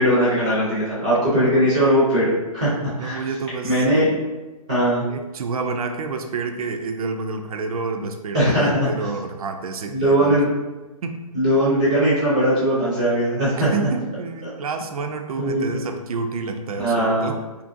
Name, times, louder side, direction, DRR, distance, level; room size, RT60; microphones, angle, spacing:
voice 1, 0.0-2.7 3.0-3.2 3.6-4.0 4.7-5.0 8.3-8.9 9.9-10.5 11.3-13.9 14.4-14.5 15.4-15.8 16.8-17.3, equal, 10° right, -11 dB, 0.5 m, -19 dB
voice 2, 3.0-4.1 5.1-10.4 11.0-11.2 13.6-17.4, right 4 dB, 70° right, 6 dB, 0.4 m, -29 dB
2.8 x 2.5 x 2.6 m, 1.1 s
hypercardioid pair, 175°, 19 cm